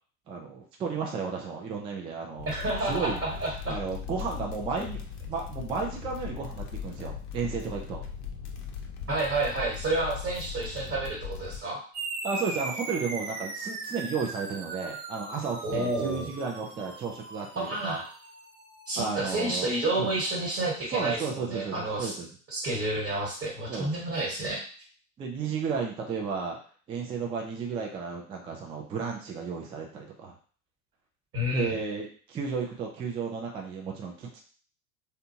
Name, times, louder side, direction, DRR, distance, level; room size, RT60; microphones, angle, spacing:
voice 1, 0.3-2.5 2.9-3.2 3.7-5.0 5.2-8.0 12.2-18.0 19.0-19.7 20.0-20.1 20.9-22.3 23.7-23.9 25.2-26.6 26.9-30.3 31.5-34.4, right 5 dB, 15° right, 0 dB, 0.3 m, -33 dB
sound 1, 2.4-11.6, left 7 dB, 40° left, 0.6 m, -39 dB
voice 2, 2.5-3.8 9.1-11.8 15.6-16.3 17.5-18.1 18.9-22.1 22.5-24.6 31.3-31.8, right 2 dB, 30° right, -5 dB, 1.3 m, -30 dB
sound 2, 11.9-20.8, right 3 dB, 55° right, 0.9 m, -40 dB
2.6 x 2.2 x 2.7 m, 0.43 s
hypercardioid pair, 85°, 44 cm